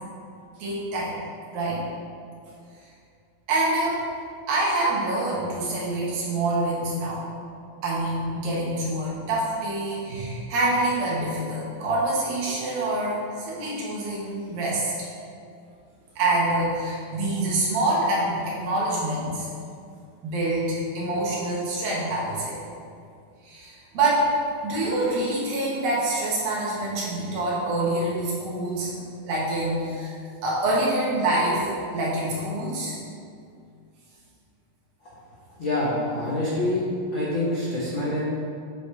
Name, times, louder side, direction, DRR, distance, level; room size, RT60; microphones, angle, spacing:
voice 1, 0.6-1.2 1.5-1.8 3.5-4.1 4.5-7.2 7.8-15.1 16.2-19.5 20.2-22.6 23.4-24.3 24.6-30.1 30.4-33.0, right 2 dB, 85° right, -6 dB, 3.2 m, -26 dB
voice 2, 35.6-36.8 37.1-38.2, left 1 dB, 85° left, -8 dB, 1.0 m, -26 dB
8.9 x 4.9 x 3.3 m, 2.4 s
omnidirectional pair, 4.0 m